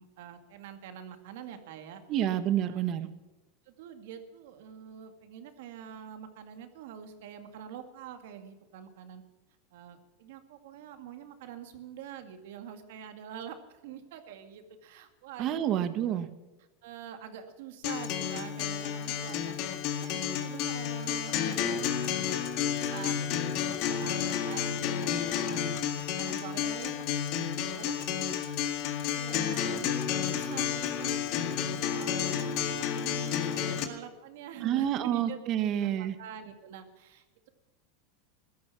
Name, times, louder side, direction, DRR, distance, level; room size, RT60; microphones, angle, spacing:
voice 1, 0.0-2.0 2.6-2.8 3.7-9.2 9.7-13.6 13.8-15.9 16.8-19.5 20.0-22.5 22.8-26.9 27.3-28.0 29.1-35.4 35.7-37.5, right 9 dB, 75° right, 7 dB, 2.2 m, -45 dB
voice 2, 2.1-3.1 15.4-16.3 34.6-36.1, right 10 dB, 40° right, 11 dB, 1.4 m, -28 dB
Acoustic guitar, 17.8-33.8, left 9 dB, 55° left, 1.9 m, -31 dB
16.0 x 13.0 x 6.1 m, 1.1 s
supercardioid pair, 130°, 0 cm